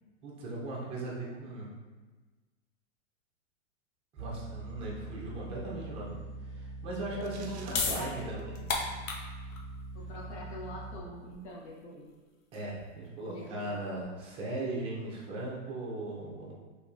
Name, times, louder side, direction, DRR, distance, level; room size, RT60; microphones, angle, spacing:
voice 1, 0.2-1.7 4.1-6.1 6.5-8.6 12.5-16.5, right 2 dB, 15° right, -4 dB, 0.6 m, -38 dB
sound 1, 4.2-11.0, right 2 dB, ahead, 1.4 m, -43 dB
voice 2, 7.1-8.7 9.9-12.1 13.2-14.0, equal, 60° left, -4 dB, 1.3 m, -45 dB
sound 2, 7.2-7.9, right 6 dB, 60° right, 0.5 m, -50 dB
sound 3, 7.7-14.0, left 4 dB, 90° left, 0.8 m, -37 dB
3.0 x 2.8 x 3.6 m, 1.3 s
hypercardioid pair, 150°, 38 cm